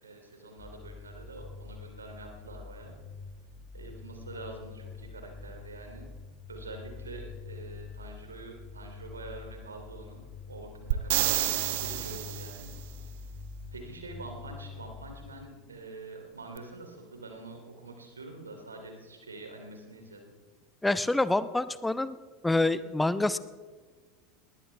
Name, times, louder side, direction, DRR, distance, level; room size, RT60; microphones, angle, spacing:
voice 1, 0.0-2.9 3.7-6.1 6.5-10.2 10.5-12.7 13.7-20.3, right 3 dB, 80° right, 4 dB, 2.9 m, -45 dB
sound 1, 0.6-15.3, left 5 dB, 45° left, 3.6 m, -45 dB
sound 2, 10.9-12.7 16.6-16.7, right 15 dB, 60° right, 1.0 m, -29 dB
voice 2, 20.8-22.2 22.4-23.4, left 2 dB, 5° left, 15 dB, 0.7 m, -26 dB
20.0 x 19.5 x 3.4 m, 1.4 s
figure-of-eight pair, 80°, 0 cm